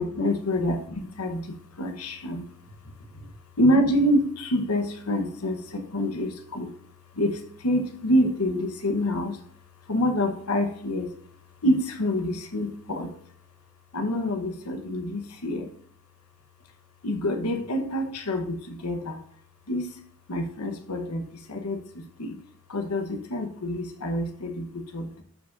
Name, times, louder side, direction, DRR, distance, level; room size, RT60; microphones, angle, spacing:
voice 1, 0.0-3.3 3.6-6.7 7.1-9.4 9.8-11.1 11.6-13.1 13.9-15.7 17.0-19.2 19.7-20.0 20.3-22.4 22.7-25.2, equal, 85° left, 5 dB, 1.1 m, -27 dB
12.0 x 4.8 x 2.6 m, 0.62 s
head